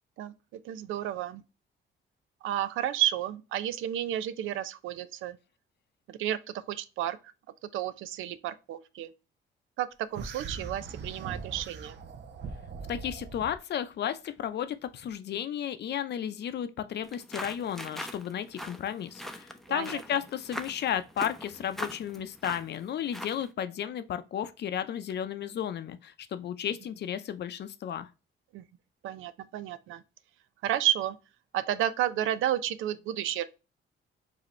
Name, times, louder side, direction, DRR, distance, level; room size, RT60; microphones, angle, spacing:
voice 1, 0.2-1.4 2.4-5.4 6.1-7.2 7.6-9.1 9.8-12.0 19.7-20.0 28.5-28.6 29.0-30.0 30.6-31.2 31.5-33.4, right 12 dB, 85° right, 0.5 m, -31 dB
sound 1, 10.1-13.6, right 5 dB, 60° right, 0.8 m, -41 dB
voice 2, 12.9-28.1, left 9 dB, 60° left, 0.6 m, -33 dB
sound 2, 17.0-23.5, equal, ahead, 0.6 m, -42 dB
5.0 x 2.8 x 3.1 m
cardioid pair, 90°, 20 cm